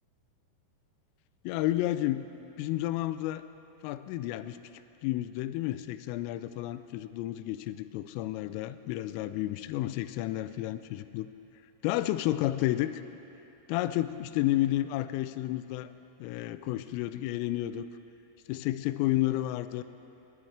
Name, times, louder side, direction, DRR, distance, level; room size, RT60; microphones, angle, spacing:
voice 1, 1.4-2.2 2.6-3.4 3.8-4.6 5.0-11.3 11.8-13.0 13.7-15.9 16.2-17.9 18.5-19.8, left 15 dB, 85° left, 12 dB, 3.1 m, -31 dB
29.0 x 12.5 x 3.3 m, 2.9 s
omnidirectional pair, 5.7 m